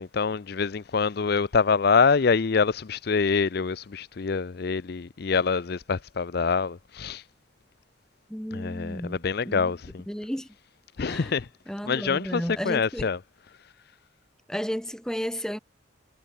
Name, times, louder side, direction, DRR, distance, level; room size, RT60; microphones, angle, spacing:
voice 1, 0.0-7.2 8.5-10.0 11.0-11.5 11.8-13.2, left 5 dB, 55° left, 0.5 m, -25 dB
voice 2, 8.3-9.7 10.1-10.5 11.1-11.3 11.7-13.1 14.5-15.6, equal, 5° left, 1.3 m, -33 dB
head